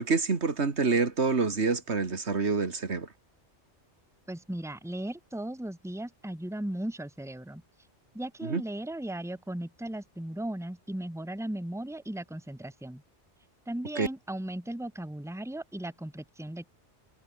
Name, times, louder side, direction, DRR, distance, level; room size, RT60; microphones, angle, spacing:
voice 1, 0.0-3.1 8.4-8.6 14.0-14.1, right 4 dB, 70° right, 2.3 m, -27 dB
voice 2, 4.3-7.6 8.1-13.0 13.7-16.7, right 1 dB, ahead, 1.7 m, -37 dB
omnidirectional pair, 1.2 m